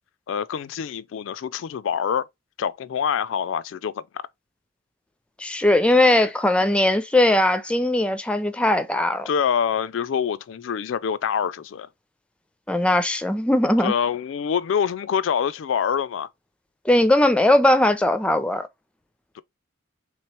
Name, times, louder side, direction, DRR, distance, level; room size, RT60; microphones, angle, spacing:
voice 1, 0.3-2.3 2.6-4.0 6.2-6.3 9.3-11.9 13.8-16.3 19.4-19.5, left 7 dB, 70° left, 0.3 m, -25 dB
voice 2, 5.4-9.3 12.7-13.9 16.9-18.7, left 1 dB, 5° left, 0.4 m, -19 dB
3.5 x 3.0 x 4.3 m
head